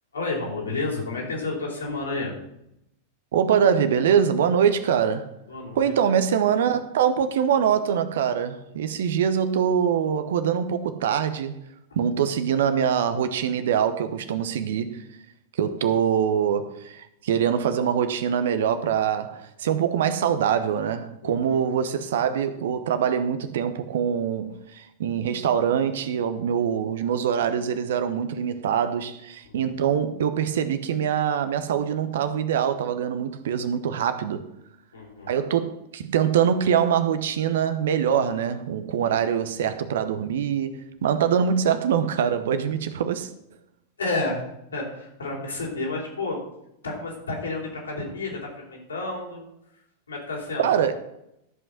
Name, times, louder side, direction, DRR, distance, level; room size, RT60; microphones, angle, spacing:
voice 1, 0.1-2.3 5.5-5.9 15.6-15.7 21.2-21.6 29.4-29.6 34.9-35.3 39.0-39.2 44.0-44.4 44.7-46.4 46.8-49.4 50.1-50.8, left 3 dB, 75° left, 3.7 m, -31 dB
voice 2, 3.3-5.3 5.7-11.6 12.0-15.0 15.6-34.4 35.3-43.3 50.6-50.9, right 8 dB, 60° right, 0.9 m, -24 dB
13.5 x 5.5 x 6.2 m
figure-of-eight pair, 90°, 0 cm